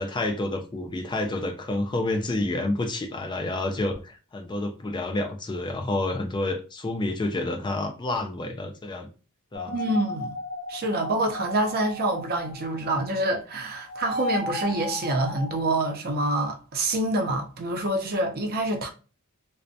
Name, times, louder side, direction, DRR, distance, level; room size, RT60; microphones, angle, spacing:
voice 1, 0.0-9.1 9.5-9.7, left 2 dB, 20° left, 0.3 m, -29 dB
sound 1, 9.5-13.4 13.6-15.6, left 2 dB, 85° left, 0.7 m, -35 dB
voice 2, 9.7-10.4 10.7-18.9, right 1 dB, 45° right, 0.5 m, -26 dB
2.5 x 2.0 x 2.6 m
head